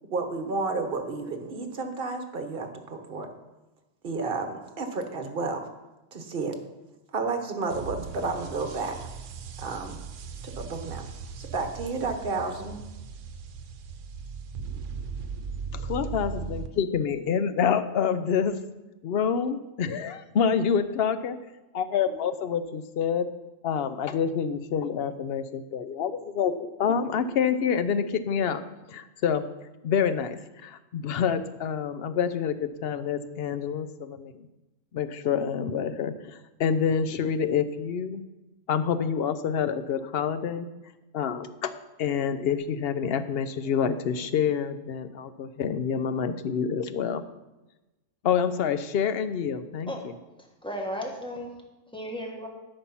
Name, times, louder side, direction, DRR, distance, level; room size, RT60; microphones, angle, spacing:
voice 1, 0.0-3.3 4.0-5.7 6.1-6.6 7.1-9.0 9.6-10.0 10.4-11.1 11.4-12.8, right 3 dB, 45° right, 6 dB, 1.3 m, -31 dB
sound 1, 7.7-16.7, right 5 dB, 75° right, 1.1 m, -38 dB
voice 2, 15.7-18.5 19.0-21.4 21.7-23.3 23.6-28.6 28.9-29.4 29.8-34.5 34.9-38.2 38.7-40.7 41.1-41.7 42.0-47.2 48.2-50.1, left 7 dB, 60° left, 12 dB, 0.8 m, -27 dB
voice 3, 50.4-51.5 51.9-52.5, equal, 5° left, 0 dB, 1.5 m, -35 dB
12.5 x 5.4 x 5.8 m, 1.1 s
omnidirectional pair, 1.3 m